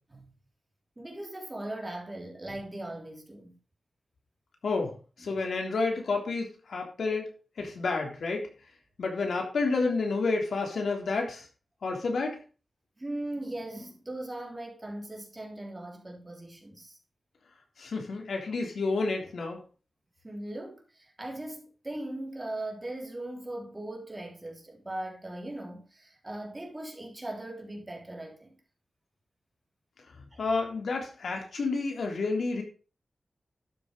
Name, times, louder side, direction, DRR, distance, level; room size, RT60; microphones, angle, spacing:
voice 1, 1.0-3.6 5.3-5.4 7.6-7.8 13.0-17.0 20.2-28.6 30.3-30.4, right 1 dB, 20° right, 3.4 m, -39 dB
voice 2, 4.6-7.3 7.6-8.5 9.0-11.4 11.8-12.4 17.8-19.6 30.4-32.6, left 3 dB, 90° left, 3.5 m, -30 dB
12.0 x 7.0 x 5.3 m
wide cardioid pair, 105°, 0 cm